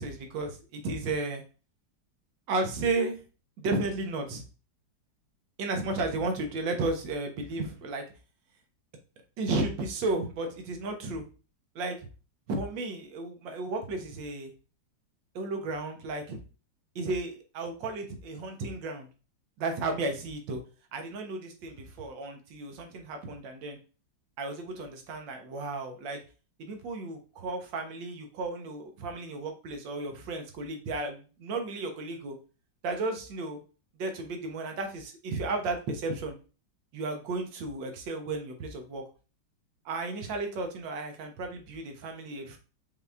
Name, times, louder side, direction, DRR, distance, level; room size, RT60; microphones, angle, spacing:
voice 1, 0.0-1.4 2.5-3.2 3.6-4.4 5.6-8.0 9.4-11.2 11.7-12.1 12.5-14.5 15.3-16.4 16.9-19.1 19.6-20.6 20.9-23.8 24.4-26.2 26.6-32.4 32.8-33.6 34.0-36.4 36.9-39.0 39.8-42.6, right 2 dB, 75° right, 5 dB, 1.5 m, -33 dB
5.5 x 2.4 x 3.3 m, 0.35 s
omnidirectional pair, 2.1 m